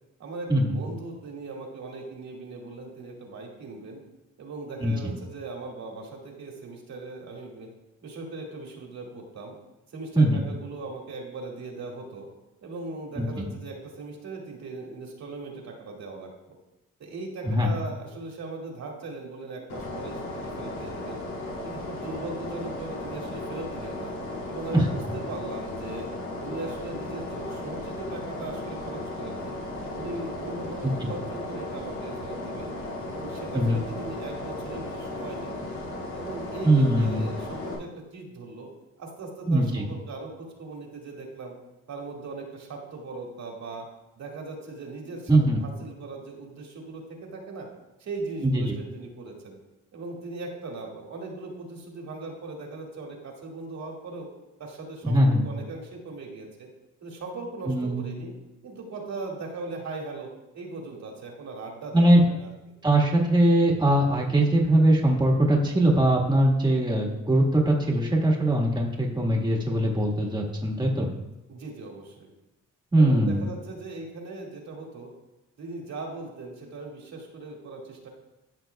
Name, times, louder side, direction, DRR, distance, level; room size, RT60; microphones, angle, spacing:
voice 1, 0.2-4.0 4.4-7.7 8.0-9.5 9.9-12.3 12.6-16.6 17.0-21.2 21.6-24.1 24.5-26.1 26.4-29.6 29.9-32.7 33.0-35.6 36.1-38.7 39.0-41.5 41.9-43.8 44.2-47.7 48.0-49.6 49.9-54.3 54.6-56.7 57.0-58.3 58.6-62.7 71.5-72.3 72.9-75.1 75.6-78.1, right 3 dB, 65° right, -1 dB, 2.2 m, -39 dB
voice 2, 13.2-13.5 17.4-17.7 24.7-24.8 30.8-31.1 33.5-33.8 36.6-37.2 39.5-39.8 45.3-45.6 48.4-48.7 55.0-55.4 57.7-58.0 61.9-62.2 62.8-71.1 72.9-73.4, right 1 dB, 15° right, -1 dB, 1.6 m, -21 dB
sound 1, 19.7-37.7, left 2 dB, 75° left, 2.4 m, -35 dB
13.5 x 6.1 x 2.3 m, 0.96 s
cardioid pair, 90°, 30 cm